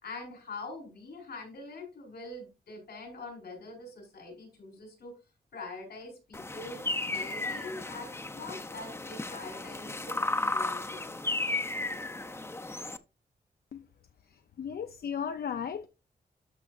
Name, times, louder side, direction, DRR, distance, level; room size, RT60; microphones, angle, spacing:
voice 1, 0.0-5.1 5.5-11.1, left 3 dB, 90° left, 4.2 m, -44 dB
sound 1, 6.3-13.0, left 2 dB, 15° left, 0.5 m, -34 dB
voice 2, 14.3-15.9, left 7 dB, 70° left, 0.5 m, -36 dB
13.0 x 5.1 x 2.5 m
wide cardioid pair, 105°, 16 cm